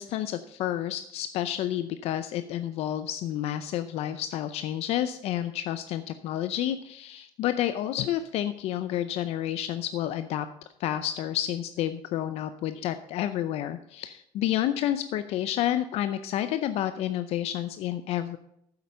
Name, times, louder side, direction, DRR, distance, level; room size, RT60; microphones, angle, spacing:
voice 1, 0.0-10.5 10.8-18.4, left 12 dB, 70° left, 11 dB, 0.6 m, -30 dB
9.6 x 7.9 x 5.5 m, 0.77 s
cardioid pair, 130°, 11 cm